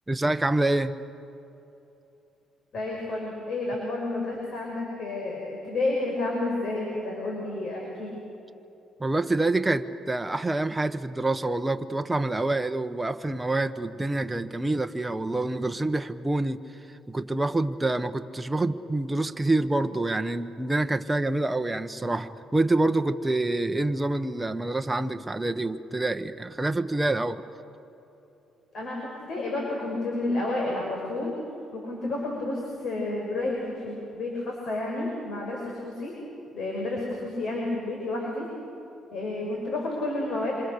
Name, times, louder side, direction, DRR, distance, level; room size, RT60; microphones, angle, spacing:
voice 1, 0.1-1.0 9.0-16.6 16.9-27.4, right 2 dB, 10° right, 6 dB, 1.0 m, -27 dB
voice 2, 2.7-8.1 28.7-31.3 31.7-36.1 36.5-38.5 39.1-40.5, left 2 dB, 60° left, -1 dB, 5.7 m, -30 dB
27.0 x 26.5 x 6.7 m, 2.9 s
cardioid pair, 105°, 0 cm